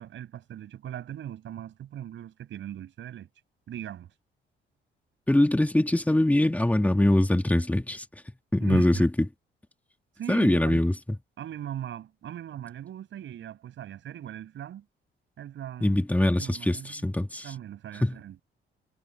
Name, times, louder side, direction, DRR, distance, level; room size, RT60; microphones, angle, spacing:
voice 1, 0.0-3.3 3.7-4.1 8.6-9.1 10.2-10.8 11.4-14.8 15.4-17.1 17.4-18.4, right 11 dB, 70° right, 6.4 m, -39 dB
voice 2, 5.3-8.0 8.5-9.1 10.3-10.9 15.8-17.5 18.0-18.2, left 1 dB, 5° left, 2.6 m, -23 dB
cardioid pair, 90°, 20 cm